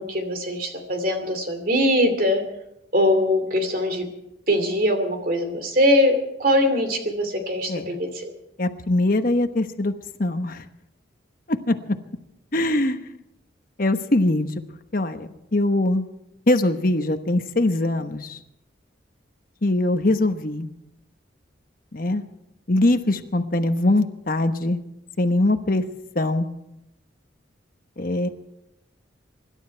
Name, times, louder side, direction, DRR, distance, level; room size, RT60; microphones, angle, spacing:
voice 1, 0.0-2.4 2.9-4.1 4.5-8.3, left 1 dB, 50° right, 7 dB, 2.6 m, -22 dB
voice 2, 8.6-9.9 10.2-10.6 11.5-11.7 12.5-13.1 13.8-14.5 14.9-16.0 16.5-18.4 19.6-20.7 21.9-22.2 22.7-24.8 25.2-25.8 26.1-26.5 28.0-28.3, left 2 dB, 50° left, 7 dB, 1.1 m, -22 dB
25.0 x 12.0 x 4.6 m, 0.85 s
head